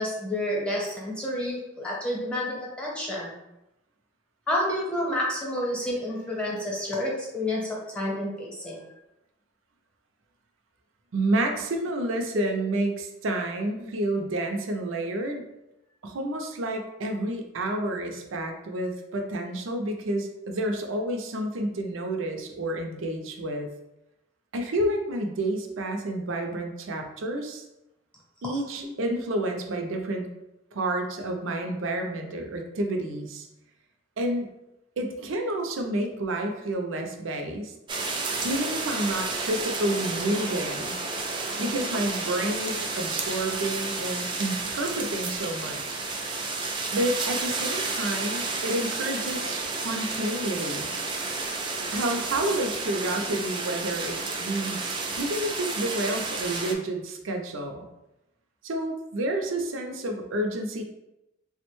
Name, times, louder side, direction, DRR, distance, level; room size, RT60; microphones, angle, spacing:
voice 1, 0.0-3.4 4.5-8.8 28.5-28.9, left 1 dB, 5° left, -4 dB, 0.8 m, -30 dB
voice 2, 11.1-15.4 16.0-23.7 24.5-27.7 28.4-30.3 30.7-33.5 34.2-34.5 35.0-37.7 38.4-40.9 41.6-46.1 46.9-50.9 51.9-57.9 58.6-60.8, right 1 dB, 85° right, 4 dB, 0.5 m, -29 dB
sound 1, 37.9-56.7, right 3 dB, 25° right, 0.3 m, -31 dB
3.4 x 2.1 x 3.0 m, 0.91 s
head